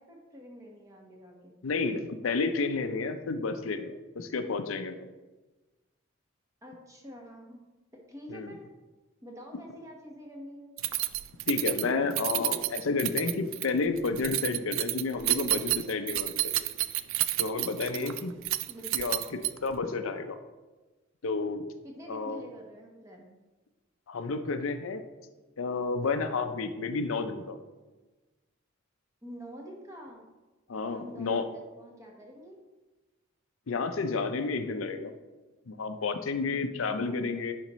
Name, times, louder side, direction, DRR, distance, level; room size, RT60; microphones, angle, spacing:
voice 1, 0.0-1.5 6.6-7.6 7.9-8.7 9.2-10.7 17.9-18.3 18.7-19.1 21.8-23.3 29.2-30.3 30.9-32.6 36.8-37.2, equal, 15° right, 0 dB, 1.2 m, -47 dB
voice 2, 1.6-5.0 8.3-8.5 11.5-16.5 17.4-18.3 18.9-20.4 21.2-21.7 22.1-22.4 24.1-25.0 25.6-27.6 30.7-31.4 33.7-35.1 35.7-37.5, left 4 dB, 90° left, 8 dB, 0.5 m, -31 dB
Keys jangling, 10.8-19.8, right 15 dB, 75° right, 0.3 m, -30 dB
10.5 x 4.3 x 3.0 m, 1.2 s
head